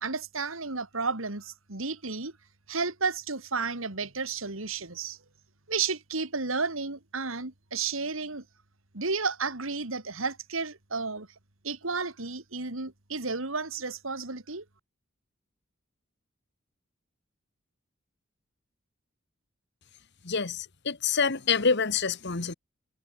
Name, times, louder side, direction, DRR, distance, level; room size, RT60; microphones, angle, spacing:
voice 1, 0.0-2.3 2.7-5.2 5.7-8.4 8.9-11.3 11.6-14.6, right 4 dB, 75° right, 3.0 m, -32 dB
voice 2, 20.2-22.5, left 5 dB, 55° left, 1.5 m, -27 dB
head